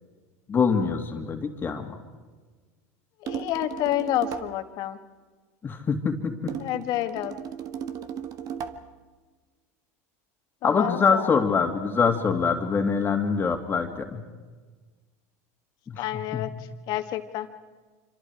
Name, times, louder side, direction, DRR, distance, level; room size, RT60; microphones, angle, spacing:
voice 1, 0.5-2.0 5.6-6.5 10.6-14.2 15.9-16.4, left 5 dB, 25° left, 4 dB, 2.6 m, -24 dB
voice 2, 3.2-5.0 6.6-7.3 10.6-11.3 16.0-16.5 16.9-17.5, left 14 dB, 55° left, 8 dB, 1.7 m, -29 dB
sound 1, 3.3-4.6 6.5-8.9, right 8 dB, 45° right, 1.6 m, -36 dB
27.0 x 25.5 x 4.8 m, 1.4 s
hypercardioid pair, 100°, 8 cm